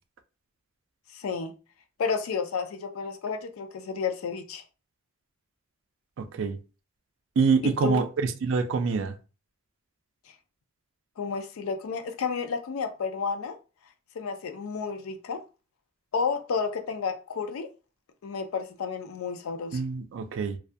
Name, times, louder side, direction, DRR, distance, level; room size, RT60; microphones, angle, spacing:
voice 1, 1.1-1.5 2.0-4.6 7.6-8.0 11.2-13.6 14.2-15.4 16.1-17.7 18.2-19.8, left 5 dB, 85° left, 0.4 m, -31 dB
voice 2, 6.2-6.6 7.4-9.1 19.7-20.6, right 5 dB, 65° right, 0.3 m, -26 dB
2.3 x 2.1 x 2.6 m
head